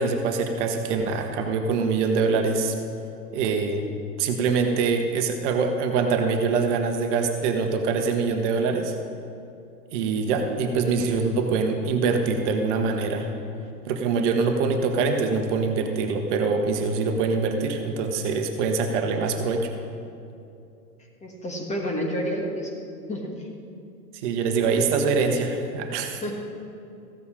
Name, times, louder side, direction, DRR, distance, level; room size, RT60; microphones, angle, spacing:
voice 1, 0.0-2.7 3.3-3.8 4.2-8.9 9.9-13.3 13.9-19.7 24.1-26.3, right 4 dB, 45° right, 4 dB, 1.2 m, -24 dB
voice 2, 21.2-22.7 23.1-23.4 26.2-26.3, equal, 15° left, 1 dB, 1.4 m, -29 dB
14.5 x 8.4 x 4.8 m, 2.6 s
hypercardioid pair, 110°, 49 cm